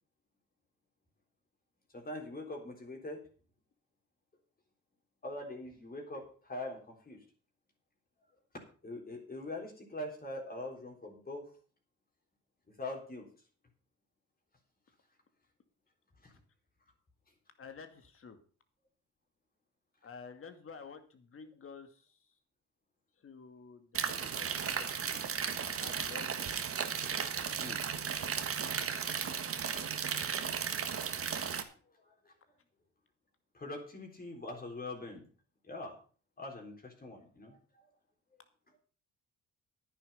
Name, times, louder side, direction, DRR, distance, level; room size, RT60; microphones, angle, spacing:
voice 1, 1.9-3.2 5.2-7.2 8.8-11.5 12.7-13.3 27.6-27.8 28.3-28.7 32.0-32.3 33.5-35.3 35.7-36.0 36.4-37.6, left 2 dB, 30° left, 1 dB, 3.6 m, -43 dB
voice 2, 17.6-18.4 20.0-22.3 23.2-26.5, left 5 dB, 45° left, 8 dB, 2.2 m, -51 dB
sound 1, 23.9-31.6, right 7 dB, 50° right, 1.5 m, -35 dB
10.5 x 9.9 x 5.6 m, 0.39 s
cardioid pair, 90°, 30 cm